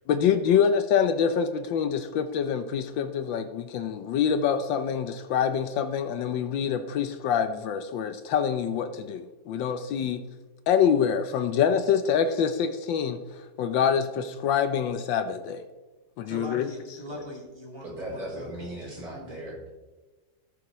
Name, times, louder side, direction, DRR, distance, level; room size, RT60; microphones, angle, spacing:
voice 1, 0.1-10.2 10.7-13.2 13.6-15.6 16.2-16.7, left 7 dB, 75° left, 9 dB, 1.3 m, -25 dB
voice 2, 16.3-19.4, left 1 dB, 15° left, -2 dB, 2.0 m, -41 dB
voice 3, 17.8-19.7, right 1 dB, 45° right, -5 dB, 4.1 m, -38 dB
17.5 x 7.0 x 3.1 m, 1.2 s
omnidirectional pair, 2.2 m